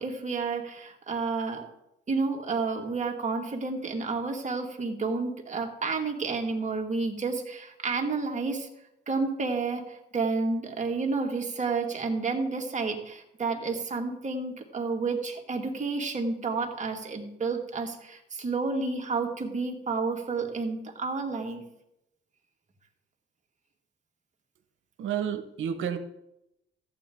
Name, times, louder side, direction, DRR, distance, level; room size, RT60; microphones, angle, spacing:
voice 1, 0.0-1.7 2.1-8.7 9.1-21.6, right 4 dB, 35° right, 2 dB, 1.9 m, -30 dB
voice 2, 25.0-26.0, right 8 dB, 80° right, 9 dB, 1.1 m, -30 dB
14.0 x 8.8 x 3.7 m, 0.84 s
cardioid pair, 90°, 20 cm